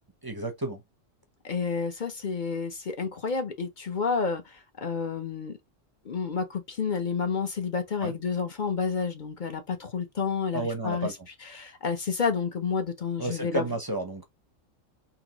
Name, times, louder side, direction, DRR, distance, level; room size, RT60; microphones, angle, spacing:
voice 1, 0.2-0.8 8.0-8.1 10.5-11.1 13.2-14.2, right 2 dB, 25° right, 0.5 m, -31 dB
voice 2, 1.4-5.6 6.0-11.1 11.4-13.7, left 5 dB, 45° left, 0.7 m, -30 dB
3.9 x 2.9 x 2.9 m
omnidirectional pair, 1.4 m